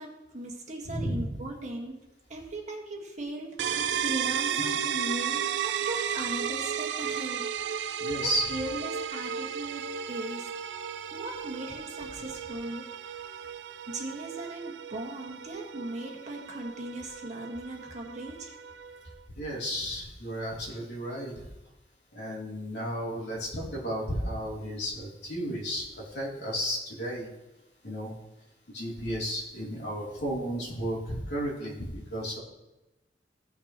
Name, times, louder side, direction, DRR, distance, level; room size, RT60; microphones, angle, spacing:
voice 1, 0.0-2.0 2.3-7.4 7.8-7.9 8.2-10.4 11.1-12.9 13.9-18.5, right 2 dB, 40° right, 0 dB, 1.6 m, -38 dB
voice 2, 0.8-1.2 4.5-4.6 8.0-8.5 19.4-21.3 22.1-25.9 26.1-27.3 27.8-28.1 28.7-32.4, equal, 70° left, -5 dB, 3.2 m, -33 dB
sound 1, 3.6-19.2, right 8 dB, 85° right, 0.4 m, -34 dB
16.5 x 5.8 x 3.0 m, 1.0 s
head